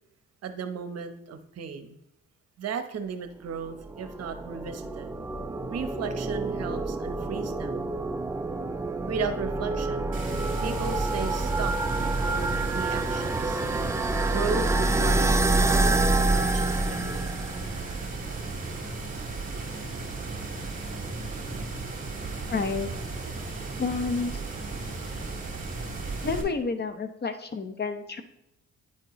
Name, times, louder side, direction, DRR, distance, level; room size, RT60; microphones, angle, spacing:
voice 1, 0.4-2.0 2.6-5.1 5.7-7.8 9.1-10.1 10.6-11.7 12.0-13.6 14.2-16.0 16.2-17.3, right 5 dB, 55° right, 9 dB, 0.9 m, -35 dB
sound 1, 3.7-17.8, right 2 dB, 10° right, 0.3 m, -27 dB
sound 2, 10.1-26.4, right 3 dB, 25° right, 2.4 m, -35 dB
voice 2, 22.5-22.9 23.8-24.3 26.2-28.2, left 4 dB, 35° left, 8 dB, 0.8 m, -29 dB
9.6 x 4.4 x 3.0 m, 0.81 s
cardioid pair, 90°, 30 cm